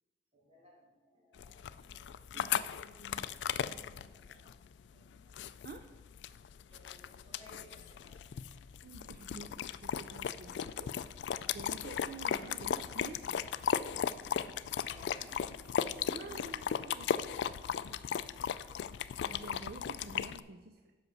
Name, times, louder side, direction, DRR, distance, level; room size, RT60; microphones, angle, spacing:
voice 1, 0.3-5.3 6.7-8.4 14.8-15.7 16.2-16.6, equal, 35° right, -4 dB, 2.6 m, -60 dB
sound 1, 1.4-20.4, left 8 dB, 85° left, 0.3 m, -37 dB
voice 2, 8.8-10.9 11.5-13.4 16.0-17.6 17.9-18.0 19.2-21.0, right 3 dB, 60° right, 6 dB, 0.4 m, -49 dB
8.0 x 5.7 x 6.2 m, 1.2 s
head